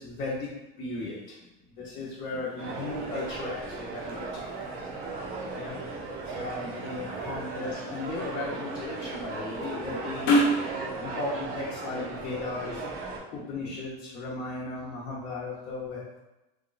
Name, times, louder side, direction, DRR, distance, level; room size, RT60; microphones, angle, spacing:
voice 1, 0.0-1.5 1.8-4.2 5.5-13.0 13.3-16.2, left 2 dB, 45° left, -6 dB, 0.8 m, -36 dB
sound 1, 2.0-10.7, equal, 85° left, 0.9 m, -33 dB
sound 2, 2.6-13.2, right 3 dB, 45° right, 0.8 m, -37 dB
2.9 x 2.3 x 3.9 m, 0.98 s
cardioid pair, 130°, 21 cm